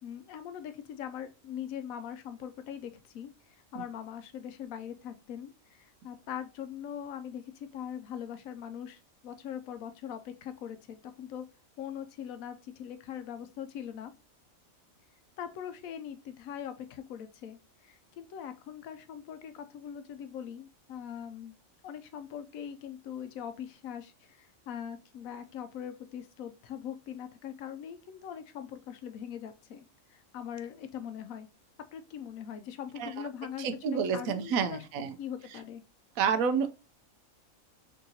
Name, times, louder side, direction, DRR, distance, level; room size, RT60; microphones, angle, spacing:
voice 1, 0.0-3.3 3.7-11.5 11.8-14.1 15.4-21.5 21.8-31.5 31.9-34.8 35.2-35.8, left 9 dB, 85° left, 1.0 m, -41 dB
voice 2, 33.0-33.3 33.6-35.1 35.5-35.6 36.2-36.7, right 6 dB, 85° right, 1.0 m, -29 dB
3.9 x 3.5 x 2.7 m
omnidirectional pair, 1.4 m